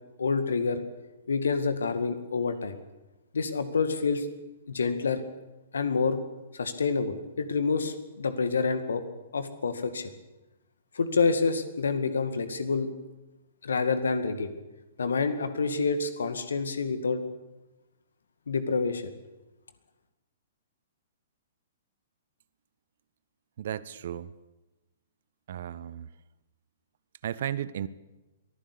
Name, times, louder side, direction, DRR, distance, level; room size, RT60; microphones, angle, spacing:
voice 1, 0.2-0.8 1.3-2.8 3.3-4.3 4.7-5.2 5.7-6.2 6.5-9.0 9.3-10.1 10.9-12.9 13.6-14.5 15.0-17.2 18.5-19.1, left 4 dB, 65° left, 10 dB, 2.1 m, -27 dB
voice 2, 23.6-24.3 25.5-26.1 27.2-27.9, right 10 dB, 55° right, 17 dB, 0.9 m, -34 dB
23.0 x 15.0 x 8.4 m, 1.1 s
figure-of-eight pair, 115°, 0 cm